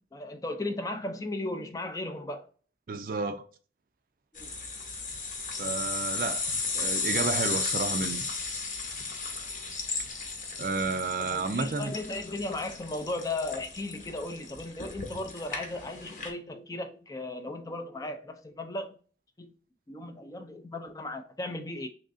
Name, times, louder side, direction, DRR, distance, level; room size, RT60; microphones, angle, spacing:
voice 1, 0.1-2.5 4.3-4.5 11.2-19.0 19.4-19.6 19.9-21.9, left 2 dB, 20° left, 0.4 m, -36 dB
voice 2, 2.9-3.4 5.6-8.3 10.6-11.9, right 4 dB, 50° right, 0.4 m, -31 dB
sound 1, 4.4-16.3, left 4 dB, 45° left, 0.9 m, -34 dB
3.6 x 3.2 x 2.5 m
head